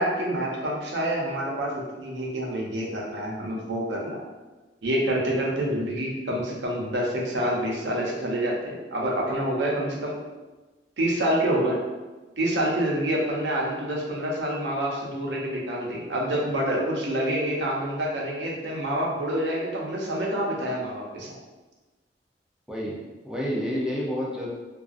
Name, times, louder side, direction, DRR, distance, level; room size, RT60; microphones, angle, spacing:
voice 1, 0.0-4.2 4.8-10.1 11.0-11.8 12.4-21.3, right 1 dB, 85° right, -3 dB, 0.6 m, -27 dB
voice 2, 23.2-24.5, equal, 5° right, -4 dB, 0.4 m, -29 dB
2.4 x 2.3 x 2.4 m, 1.2 s
head